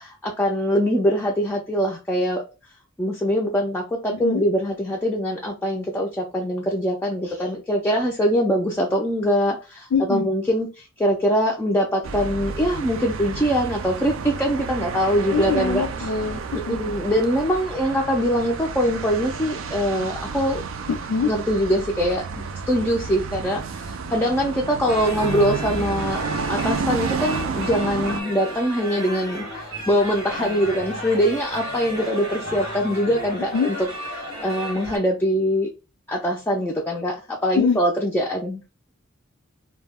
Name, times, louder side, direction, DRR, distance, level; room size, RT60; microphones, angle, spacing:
voice 1, 0.1-2.4 3.0-16.1 16.5-20.6 21.2-22.2 22.7-26.2 26.5-33.9 34.2-35.7 36.1-38.6, equal, 10° left, -1 dB, 0.3 m, -23 dB
voice 2, 4.1-4.4 9.9-10.3 15.3-16.8 20.9-21.3 33.5-33.7 37.6-37.8, left 5 dB, 85° left, 1 dB, 0.4 m, -23 dB
sound 1, 12.0-28.2, right 5 dB, 70° right, 0.3 m, -31 dB
sound 2, 24.9-35.0, equal, 90° right, 1.0 m, -33 dB
2.2 x 2.0 x 3.4 m, 0.31 s
head